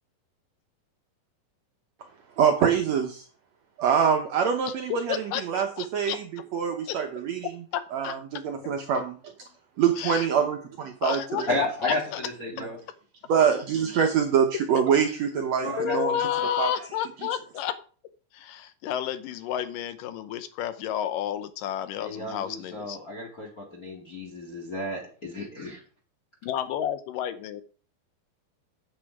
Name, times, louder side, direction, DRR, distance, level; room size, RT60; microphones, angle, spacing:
voice 1, 2.4-3.2 3.8-5.1 5.4-5.7 5.9-7.5 7.9-9.1 9.8-11.5 13.3-16.1 16.6-16.7, right 7 dB, 70° right, 4 dB, 1.6 m, -24 dB
voice 2, 4.9-6.2 6.9-7.0 7.7-8.2 8.6-9.0 10.0-10.3 11.0-12.2 15.8-17.8 18.3-23.0 26.4-27.6, left 10 dB, 75° left, 12 dB, 2.3 m, -31 dB
voice 3, 11.5-12.8 15.6-16.2 22.0-25.8, left 1 dB, 30° left, -1 dB, 2.2 m, -32 dB
8.9 x 8.2 x 4.6 m, 0.39 s
omnidirectional pair, 4.2 m